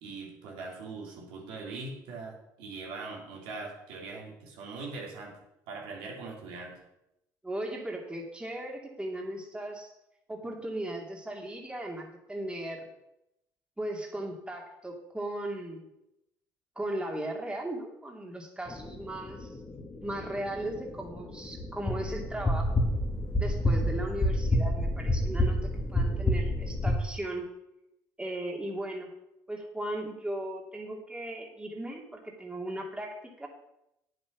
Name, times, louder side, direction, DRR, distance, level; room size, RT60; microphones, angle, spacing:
voice 1, 0.0-5.4 5.7-6.7, right 3 dB, 80° right, -2 dB, 3.1 m, -41 dB
voice 2, 7.4-9.9 10.3-12.9 13.8-15.9 16.8-19.5 20.0-22.8 23.4-27.5 28.2-29.1 29.5-33.5, right 1 dB, 10° right, 1 dB, 2.5 m, -37 dB
sound 1, 18.7-27.0, left 1 dB, 30° left, 1.8 m, -29 dB
8.8 x 7.7 x 6.0 m, 0.86 s
supercardioid pair, 70°, 9 cm